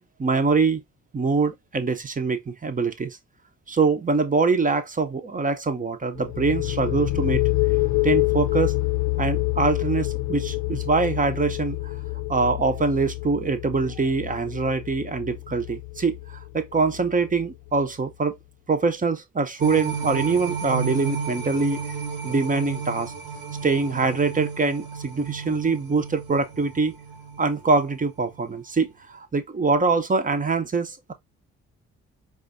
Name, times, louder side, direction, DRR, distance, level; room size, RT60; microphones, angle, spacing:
voice 1, 0.2-0.8 1.1-3.2 3.7-7.4 8.0-8.7 9.2-11.9 12.3-18.3 18.7-21.8 22.2-23.1 23.6-27.0 27.4-31.1, right 4 dB, 20° right, 0.8 m, -24 dB
sound 1, 6.1-17.7, left 19 dB, 60° left, 0.7 m, -27 dB
sound 2, 19.6-28.0 28.4-28.5, right 5 dB, 65° right, 0.9 m, -33 dB
4.8 x 2.3 x 2.5 m
hypercardioid pair, 45°, 37 cm